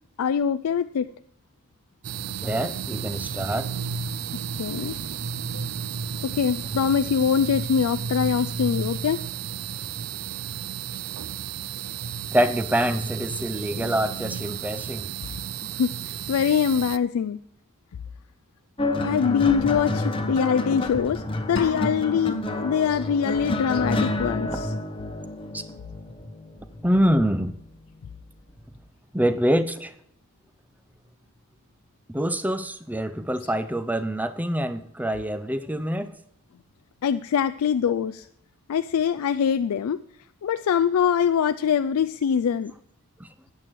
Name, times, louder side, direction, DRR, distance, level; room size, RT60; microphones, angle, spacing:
voice 1, 0.2-1.1 4.6-4.9 5.5-5.6 6.2-9.2 15.6-17.4 19.0-21.2 21.5-24.7 37.0-38.3 38.7-40.0 40.4-42.7, left 7 dB, 75° left, 0.3 m, -23 dB
sound 1, 2.0-17.0, right 7 dB, 75° right, 0.5 m, -33 dB
voice 2, 2.4-3.7 12.3-15.1 25.5-25.6 26.8-27.5 29.1-29.9 32.1-36.1 43.2-43.3, equal, 5° right, 0.5 m, -25 dB
sound 2, 18.8-27.5 28.5-28.8, left 2 dB, 25° left, 1.0 m, -29 dB
sound 3, 21.6-22.5, left 2 dB, 55° left, 1.0 m, -34 dB
14.0 x 9.1 x 4.6 m
head